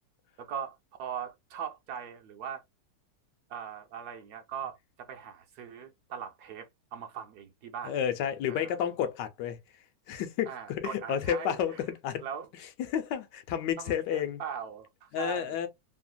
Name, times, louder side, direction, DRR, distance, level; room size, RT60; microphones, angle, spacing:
voice 1, 0.4-2.6 3.5-7.9 8.5-8.8 10.5-11.8 12.2-12.5 13.8-15.6, right 8 dB, 70° right, 1.1 m, -40 dB
voice 2, 7.8-9.6 10.1-12.2 12.9-14.4 15.1-15.7, left 9 dB, 75° left, 1.2 m, -31 dB
3.2 x 2.1 x 2.5 m
omnidirectional pair, 1.9 m